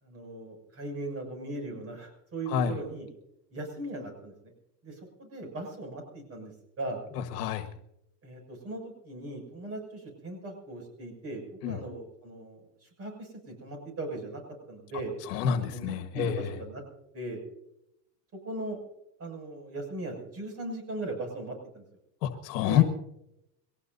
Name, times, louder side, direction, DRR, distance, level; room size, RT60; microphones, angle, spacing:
voice 1, 0.0-3.1 3.5-4.3 4.8-7.0 8.2-14.4 14.7-15.1 15.6-16.8 17.1-17.4 18.4-18.8 19.2-21.8 22.6-22.8, right 2 dB, 30° right, 2 dB, 6.8 m, -39 dB
voice 2, 2.5-2.8 7.1-7.7 11.6-11.8 15.2-16.6 22.2-22.8, left 9 dB, 70° left, 6 dB, 1.6 m, -28 dB
23.5 x 19.0 x 2.8 m, 0.83 s
supercardioid pair, 140°, 50 cm